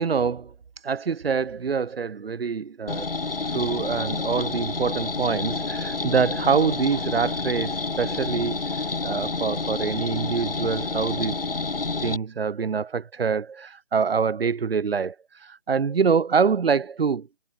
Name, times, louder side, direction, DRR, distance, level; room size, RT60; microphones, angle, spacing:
voice 1, 0.0-3.1 3.4-11.4 12.0-17.3, right 6 dB, 85° right, 0.8 m, -25 dB
sound 1, 2.9-12.2, left 3 dB, 70° left, 4.2 m, -29 dB
hypercardioid pair, 180°, 29 cm